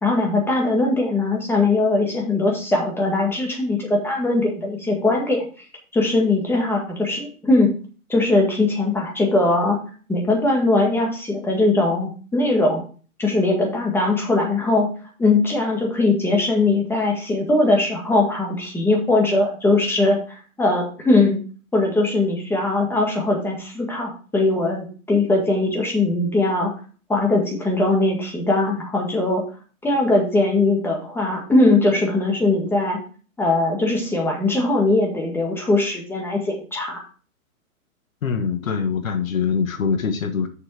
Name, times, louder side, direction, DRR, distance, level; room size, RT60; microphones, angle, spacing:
voice 1, 0.0-5.4 5.9-7.7 8.1-9.8 10.1-12.8 13.2-14.9 15.2-21.4 21.7-26.7 27.1-29.4 29.8-33.0 33.4-37.0, left 2 dB, 5° left, 0 dB, 1.8 m, -20 dB
voice 2, 38.2-40.5, left 6 dB, 70° left, 8 dB, 1.6 m, -23 dB
6.6 x 6.1 x 4.8 m, 0.39 s
hypercardioid pair, 140°, 42 cm